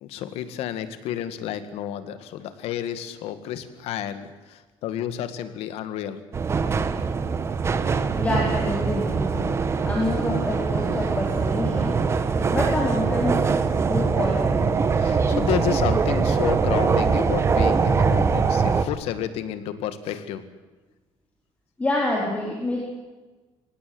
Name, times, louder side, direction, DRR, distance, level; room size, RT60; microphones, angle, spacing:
voice 1, 0.0-6.2 6.6-7.1 12.2-12.4 15.0-20.5, left 10 dB, 85° left, 11 dB, 2.1 m, -31 dB
sound 1, 6.3-18.9, right 5 dB, 25° right, 1.3 m, -22 dB
voice 2, 8.1-9.5 9.8-12.0 12.5-14.8 21.8-22.8, left 1 dB, 15° left, -2 dB, 4.5 m, -27 dB
25.0 x 18.5 x 8.0 m, 1.2 s
cardioid pair, 155°, 10 cm